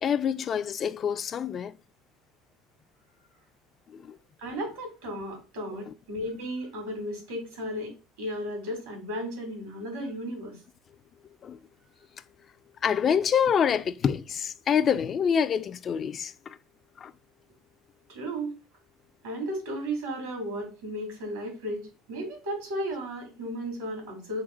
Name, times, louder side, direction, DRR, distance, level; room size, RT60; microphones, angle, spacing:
voice 1, 0.0-1.8 3.9-4.2 5.9-6.0 11.4-11.6 12.8-16.6 17.0-17.1, left 7 dB, 45° left, 0.3 m, -26 dB
voice 2, 4.4-7.9 8.2-10.6 18.1-18.5 19.2-21.8 22.1-24.4, equal, 80° right, 2.0 m, -34 dB
3.9 x 2.1 x 4.2 m
hypercardioid pair, 75°, 0 cm